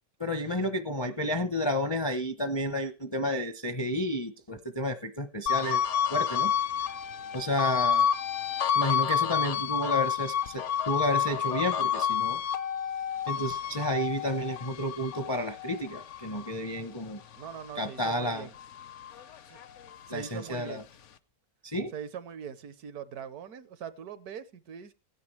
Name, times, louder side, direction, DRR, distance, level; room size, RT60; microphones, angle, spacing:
voice 1, 0.2-5.8 6.1-6.5 7.3-8.1 8.7-12.4 13.3-17.2 17.8-18.5 20.1-20.8 21.6-21.9, equal, 25° left, 0.5 m, -31 dB
sound 1, 5.5-18.1 18.5-20.2, left 9 dB, 55° left, 0.9 m, -30 dB
voice 2, 17.4-18.5 19.5-19.6 20.1-20.8 21.9-24.9, right 8 dB, 70° right, 1.3 m, -41 dB
16.5 x 9.6 x 3.2 m
omnidirectional pair, 1.8 m